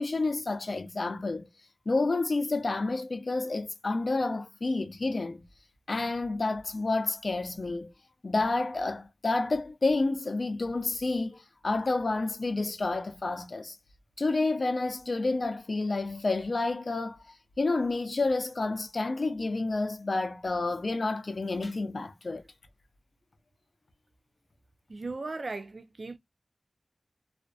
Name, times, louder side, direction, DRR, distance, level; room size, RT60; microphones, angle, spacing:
voice 1, 0.0-1.5 1.9-5.4 5.9-7.9 8.2-13.8 14.2-22.4, left 3 dB, 60° left, 0.5 m, -29 dB
voice 2, 24.9-26.2, right 3 dB, 65° right, 0.4 m, -37 dB
2.4 x 2.2 x 2.3 m
wide cardioid pair, 70°, 0 cm